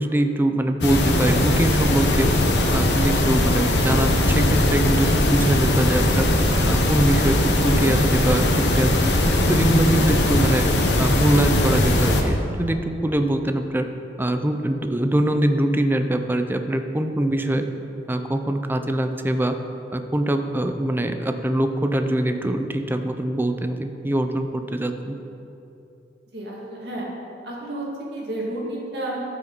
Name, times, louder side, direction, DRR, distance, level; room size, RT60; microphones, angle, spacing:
voice 1, 0.0-2.3 2.7-6.3 6.7-9.1 9.5-10.6 11.0-13.9 14.2-17.7 18.1-19.5 19.9-25.2, right 1 dB, 10° right, 7 dB, 0.5 m, -23 dB
sound 1, 0.8-12.2, left 1 dB, 70° left, 1.0 m, -20 dB
voice 2, 26.3-27.1 27.4-27.8 28.1-29.2, right 1 dB, 65° right, -4 dB, 2.1 m, -31 dB
13.0 x 6.0 x 4.0 m, 2.8 s
head